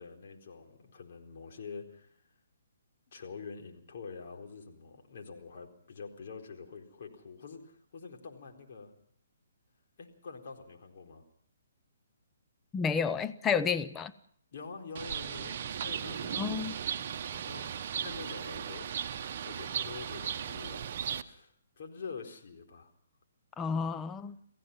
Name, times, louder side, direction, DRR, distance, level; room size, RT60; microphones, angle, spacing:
voice 1, 0.0-2.2 3.1-8.9 10.0-11.2 14.5-16.5 17.4-18.9 19.4-20.9 21.2-22.9, left 5 dB, 55° left, 3 dB, 4.2 m, -46 dB
voice 2, 12.7-14.1 16.4-16.8 23.6-24.3, left 6 dB, 15° left, 11 dB, 0.8 m, -31 dB
Bird, 14.9-21.2, right 8 dB, 45° right, 1.1 m, -37 dB
28.0 x 16.5 x 5.7 m, 0.63 s
hypercardioid pair, 140°, 0 cm